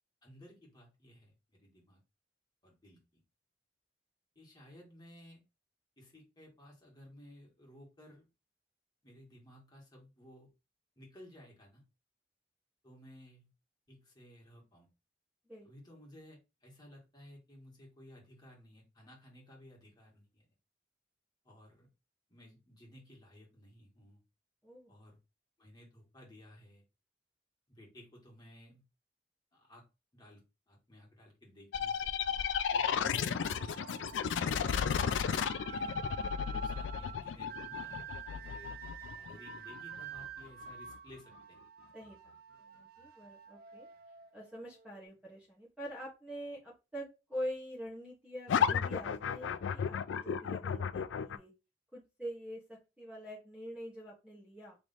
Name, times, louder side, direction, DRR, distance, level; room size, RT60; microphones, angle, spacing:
voice 1, 0.2-2.0 2.6-3.2 4.3-5.4 6.0-8.3 9.0-10.5 10.9-11.8 12.8-13.5 13.9-14.9 15.6-20.5 21.4-21.9 22.3-24.2 24.9-25.2 25.6-26.8 27.7-28.8 29.5-29.8 30.1-32.0 32.2-32.4 32.7-34.9 35.6-36.0 36.5-38.7 39.2-41.6, equal, 25° left, -1 dB, 1.7 m, -56 dB
voice 2, 24.6-24.9 41.9-42.2 42.6-43.9 44.3-51.5 51.9-54.8, equal, 5° right, -5 dB, 1.2 m, -45 dB
sound 1, 31.7-41.1 48.5-51.4, left 7 dB, 90° left, 0.4 m, -33 dB
sound 2, 32.3-45.1, right 9 dB, 55° right, 0.5 m, -50 dB
3.2 x 3.0 x 4.0 m, 0.27 s
head